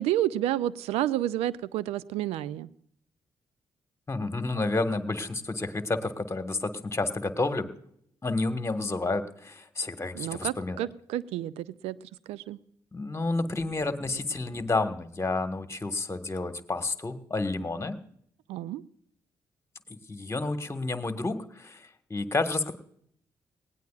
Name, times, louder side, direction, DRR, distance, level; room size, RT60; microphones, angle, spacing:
voice 1, 0.0-2.7 10.1-12.0 12.3-12.6 18.5-18.8, right 13 dB, 75° right, 20 dB, 0.5 m, -30 dB
voice 2, 4.1-7.7 8.2-10.9 12.9-18.0 19.9-22.7, left 3 dB, 25° left, 8 dB, 1.6 m, -30 dB
19.5 x 17.5 x 2.5 m, 0.67 s
hypercardioid pair, 40°, 11 cm